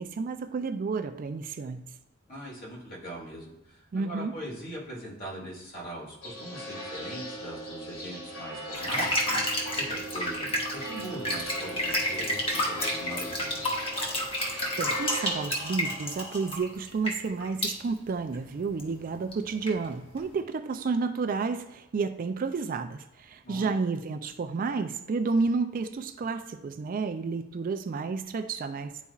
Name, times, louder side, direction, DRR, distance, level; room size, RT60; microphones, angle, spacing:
voice 1, 0.0-1.9 3.9-4.3 14.8-29.0, right 4 dB, 40° right, 7 dB, 0.3 m, -31 dB
voice 2, 2.3-9.2 9.8-13.6 23.4-23.7, right 1 dB, 45° left, -4 dB, 2.2 m, -41 dB
sound 1, 6.2-15.4, right 1 dB, 75° left, 2.0 m, -39 dB
sound 2, 8.7-17.7 18.3-18.4 18.7-18.9 19.3-19.4 19.7-20.2, left 1 dB, 25° left, 1.1 m, -30 dB
10.5 x 4.1 x 2.4 m, 0.93 s
head